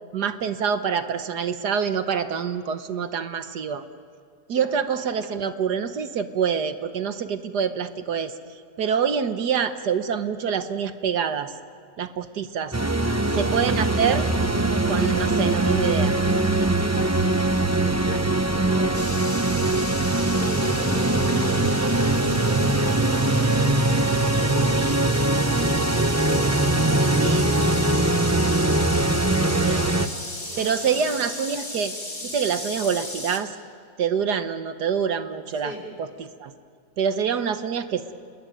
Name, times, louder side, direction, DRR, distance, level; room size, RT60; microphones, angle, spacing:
voice 1, 0.1-3.8 4.5-8.3 8.8-11.5 12.0-12.7 13.4-14.3 14.9-16.1 27.2-27.4 29.6-29.8 30.6-31.9 32.2-33.5 34.0-35.7 36.0-36.5 37.0-38.0, right 7 dB, 70° right, 10 dB, 1.6 m, -26 dB
sound 1, 12.7-30.1, right 2 dB, 20° right, 0.4 m, -22 dB
voice 2, 13.0-14.1 16.4-19.3 20.3-21.8 22.2-25.4 25.7-27.8 29.1-31.1 35.5-35.9, left 1 dB, 60° left, -2 dB, 5.5 m, -40 dB
sound 2, 18.9-33.4, left 1 dB, 25° left, 3.0 m, -36 dB
29.5 x 21.0 x 9.2 m, 2.2 s
omnidirectional pair, 1.9 m